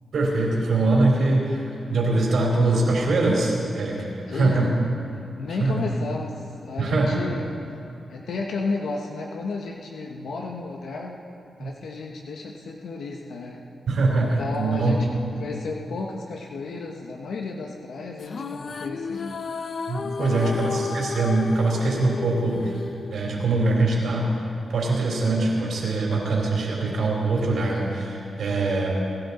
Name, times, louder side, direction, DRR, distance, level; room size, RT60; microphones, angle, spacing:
voice 1, 0.1-4.0 4.3-4.7 5.5-5.9 6.8-7.2 11.6-11.7 13.9-14.9 19.9-22.9 23.1-24.3 24.7-29.0, right 2 dB, 75° right, -2 dB, 4.2 m, -23 dB
voice 2, 4.3-4.8 5.4-7.5 8.1-11.2 11.6-13.6 14.2-15.1 15.4-19.4 20.0-20.9, left 3 dB, 80° left, 1 dB, 1.1 m, -33 dB
sound 1, 18.2-23.7, left 4 dB, 55° left, 0.6 m, -33 dB
22.5 x 12.0 x 4.3 m, 2.7 s
cardioid pair, 65°, 0 cm